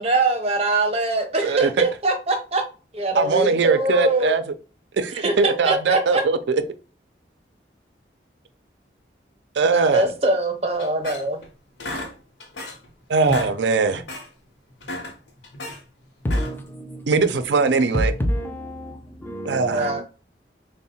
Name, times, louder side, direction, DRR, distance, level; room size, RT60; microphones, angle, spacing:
voice 1, 0.0-2.6 2.9-4.4 5.1-6.2 9.7-11.4 19.7-20.0, right 2 dB, 35° right, 0.7 m, -22 dB
voice 2, 1.4-1.8 3.1-4.4 4.9-6.6 9.6-10.1 13.1-14.0 17.1-18.1 19.4-19.9, right 4 dB, 80° right, 0.4 m, -20 dB
sound 1, 10.8-11.5 11.8-12.9 13.2-13.6 13.9-14.3 14.7-15.8 16.2-16.7, left 1 dB, 85° left, 0.8 m, -33 dB
voice 3, 16.2-17.1 17.5-20.0, equal, 10° left, 0.4 m, -28 dB
3.5 x 2.1 x 4.1 m
head